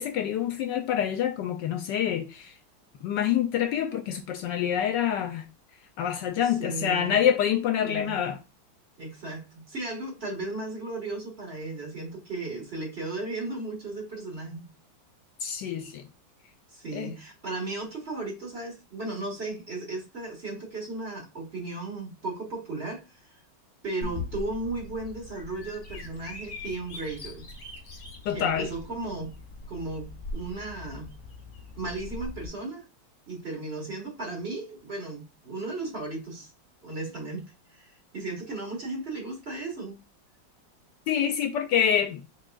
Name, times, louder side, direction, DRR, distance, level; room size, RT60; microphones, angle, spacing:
voice 1, 0.0-2.6 3.0-5.4 6.0-8.4 15.4-16.0 16.9-17.1 28.3-28.7 41.1-42.2, left 9 dB, 75° left, 1.1 m, -26 dB
voice 2, 6.4-7.2 7.8-8.2 9.0-14.7 16.7-23.4 23.8-27.5 28.3-29.4 29.7-31.1 31.7-32.8 33.3-36.5 36.8-40.0, right 2 dB, 35° right, 1.7 m, -35 dB
Bird vocalization bird call bird song, 24.0-32.5, left 3 dB, 30° left, 1.1 m, -41 dB
4.7 x 4.5 x 2.3 m
omnidirectional pair, 2.1 m